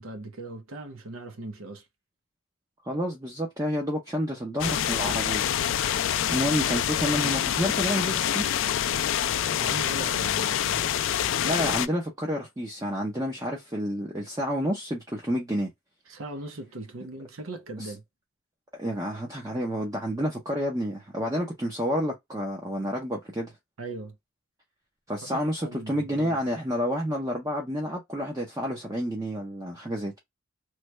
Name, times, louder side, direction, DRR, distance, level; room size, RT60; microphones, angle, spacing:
voice 1, 0.0-1.8 9.6-10.8 16.1-18.0 23.8-24.1 25.2-26.4, right 2 dB, 80° right, 0.9 m, -39 dB
voice 2, 2.8-5.4 6.3-8.5 11.4-15.7 17.8-17.9 18.8-23.5 25.1-30.2, equal, 15° right, 0.6 m, -29 dB
sound 1, 4.6-11.9, left 10 dB, 65° left, 0.3 m, -26 dB
3.2 x 2.2 x 3.1 m
head